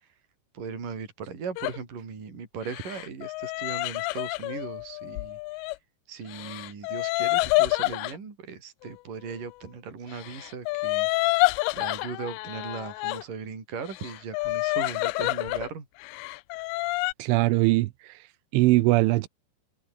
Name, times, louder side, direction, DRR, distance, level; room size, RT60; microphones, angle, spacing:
voice 1, 0.5-5.7 6.1-11.1 11.7-15.9, right 5 dB, 45° right, 6.5 m, -38 dB
sound 1, 1.6-1.8 2.6-5.8 6.3-8.2 10.1-13.2 13.8-15.7 16.0-17.1, left 25 dB, 85° left, 2.5 m, -28 dB
voice 2, 17.2-18.2 18.5-19.3, right 19 dB, 90° right, 3.3 m, -21 dB
omnidirectional pair, 5.5 m